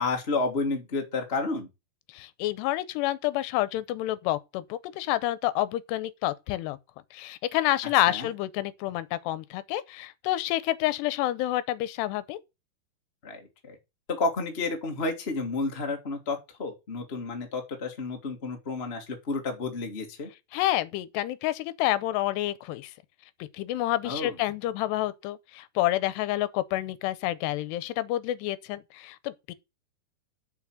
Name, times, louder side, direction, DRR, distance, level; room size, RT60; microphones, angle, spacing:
voice 1, 0.0-1.7 8.1-8.3 13.2-13.8 14.1-20.3 24.0-24.4, left 3 dB, 35° left, 1.0 m, -31 dB
voice 2, 2.1-6.8 7.1-12.4 20.5-22.9 23.5-29.5, left 15 dB, 90° left, 2.8 m, -28 dB
7.3 x 6.3 x 6.4 m
omnidirectional pair, 4.8 m